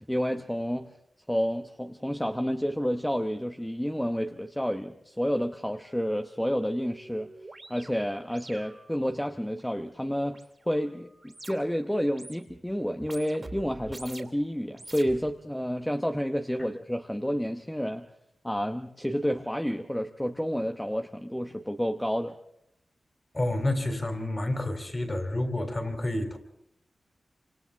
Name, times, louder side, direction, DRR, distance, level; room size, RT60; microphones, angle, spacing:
voice 1, 0.1-0.9 1.3-7.3 7.7-18.1 18.4-22.4, equal, 5° left, 5 dB, 1.0 m, -30 dB
sound 1, 5.8-5.9 6.2-11.8 12.1-12.6 13.0-14.4 14.7-15.6, right 2 dB, 30° right, 2.9 m, -47 dB
voice 2, 23.3-26.4, left 1 dB, 25° left, 6 dB, 3.4 m, -29 dB
27.5 x 27.0 x 3.6 m, 0.80 s
wide cardioid pair, 115°, 0 cm